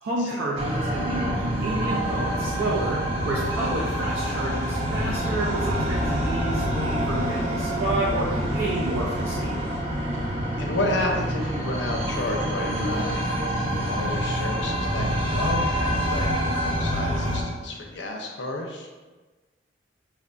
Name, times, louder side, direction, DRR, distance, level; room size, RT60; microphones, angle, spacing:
voice 1, 0.0-9.6, right 2 dB, 80° right, -5 dB, 0.5 m, -30 dB
sound 1, 0.6-17.4, equal, 30° right, 0.6 m, -26 dB
sound 2, 1.9-9.8, equal, 15° left, 0.4 m, -41 dB
voice 2, 10.6-13.3 13.9-16.3 16.6-18.9, left 1 dB, 70° left, 1 dB, 0.6 m, -31 dB
4.7 x 2.6 x 2.3 m, 1.3 s
head